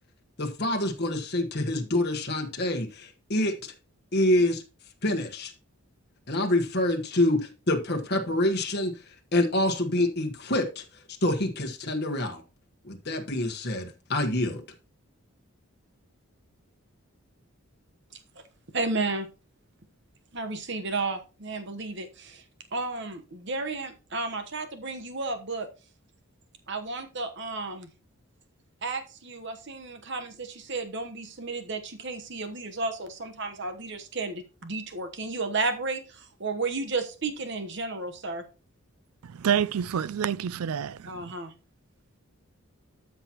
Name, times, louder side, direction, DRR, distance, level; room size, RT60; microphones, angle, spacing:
voice 1, 0.4-3.7 4.1-4.6 5.0-5.5 6.3-8.9 9.3-10.8 11.2-12.4 12.8-14.6, left 1 dB, 45° left, 1.4 m, -26 dB
voice 2, 18.7-19.3 20.3-22.4 22.7-25.7 26.7-27.9 28.8-38.4 41.1-41.5, right 3 dB, 50° right, 1.1 m, -33 dB
voice 3, 39.2-41.3, right 8 dB, 80° right, 0.4 m, -28 dB
12.5 x 6.0 x 3.0 m
head